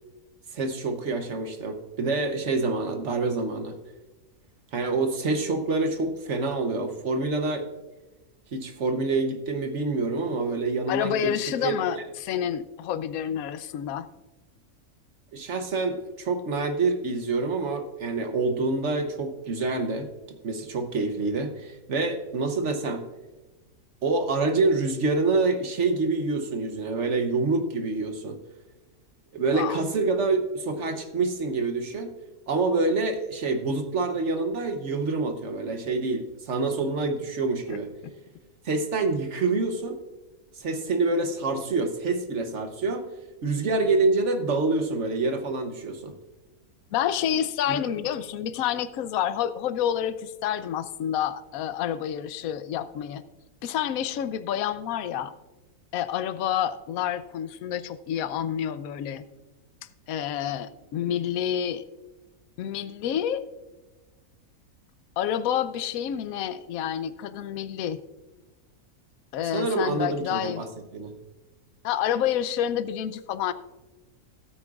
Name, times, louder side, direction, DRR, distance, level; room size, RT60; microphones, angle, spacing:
voice 1, 0.5-3.8 4.7-7.7 8.5-12.0 15.3-23.0 24.0-28.4 29.3-32.1 32.5-37.9 38.6-40.0 40.5-43.1 43.4-46.1 47.7-48.0 69.5-70.7 70.9-71.1, right 3 dB, 55° right, 7 dB, 1.1 m, -27 dB
voice 2, 10.9-14.1 29.5-29.8 37.7-37.8 38.0-38.1 46.9-53.2 53.6-55.3 55.9-59.2 60.1-61.8 62.6-63.4 65.2-68.0 69.3-70.7 71.8-73.5, left 10 dB, 75° left, 13 dB, 1.0 m, -28 dB
19.0 x 8.6 x 2.4 m, 1.2 s
omnidirectional pair, 1.6 m